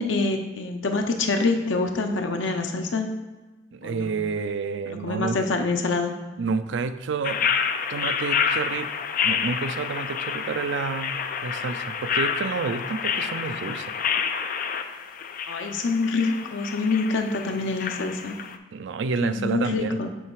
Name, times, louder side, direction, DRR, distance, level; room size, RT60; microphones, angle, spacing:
voice 1, 0.0-3.1 3.8-4.1 4.9-6.1 15.5-18.4 19.2-20.1, left 3 dB, 80° left, 4 dB, 0.7 m, -26 dB
voice 2, 3.7-5.4 6.4-7.5 7.9-8.9 9.2-13.9 18.7-20.0, right 4 dB, 75° right, 11 dB, 0.4 m, -29 dB
sound 1, 7.2-18.6, left 7 dB, 45° left, 0.4 m, -28 dB
7.7 x 3.3 x 4.7 m, 1.2 s
head